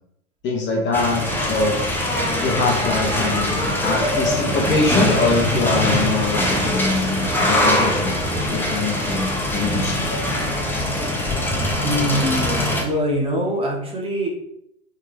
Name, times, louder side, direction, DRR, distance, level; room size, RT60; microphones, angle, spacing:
voice 1, 0.4-1.8 2.4-8.2 8.5-10.0, left 3 dB, 30° left, -1 dB, 1.4 m, -23 dB
sound 1, 0.9-12.8, left 1 dB, 5° left, 1.1 m, -22 dB
voice 2, 11.6-14.3, equal, 15° right, -2 dB, 1.9 m, -24 dB
8.0 x 4.0 x 3.5 m, 0.79 s
hypercardioid pair, 105°, 38 cm